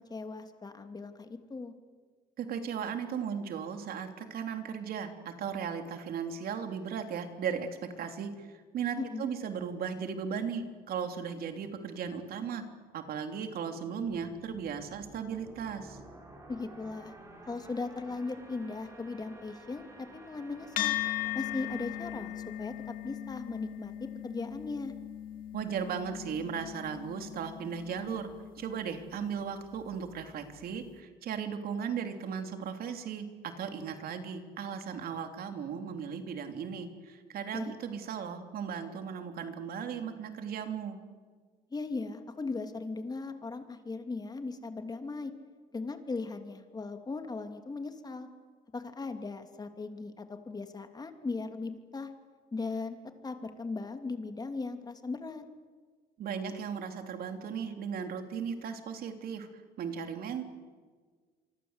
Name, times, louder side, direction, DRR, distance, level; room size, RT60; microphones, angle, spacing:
voice 1, 0.0-1.7 9.0-9.3 16.5-17.1 17.5-21.0 21.3-23.9 24.2-24.9 37.5-37.8 41.7-45.3 45.7-48.3 48.7-52.1 52.5-53.0 53.2-55.4, left 3 dB, 25° left, 7 dB, 2.8 m, -38 dB
voice 2, 2.4-7.7 8.0-12.6 12.9-16.0 25.5-28.3 28.6-33.3 33.6-41.0 56.2-59.5 59.8-60.4, right 7 dB, 60° right, 6 dB, 3.3 m, -36 dB
sound 1, 14.1-23.6, right 1 dB, 20° right, 6.7 m, -53 dB
sound 2, 20.8-29.4, left 12 dB, 55° left, 2.1 m, -38 dB
27.0 x 24.5 x 8.2 m, 1.5 s
cardioid pair, 110°, 17 cm